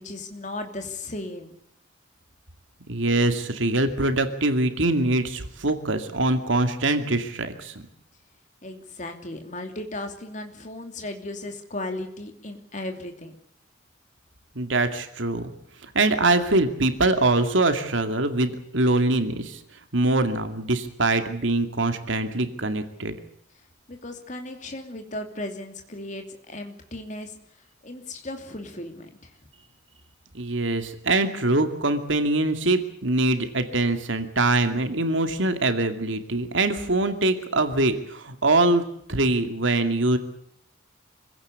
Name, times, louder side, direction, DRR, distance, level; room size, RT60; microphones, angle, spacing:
voice 1, 0.0-1.6 8.6-13.4 23.9-27.3 27.8-29.3, left 2 dB, 35° left, 5 dB, 2.8 m, -36 dB
voice 2, 2.9-7.9 14.6-15.5 15.9-19.6 19.9-23.1 30.3-38.8 39.1-40.2, right 2 dB, 70° right, 7 dB, 2.4 m, -23 dB
25.5 x 16.5 x 8.2 m, 0.68 s
head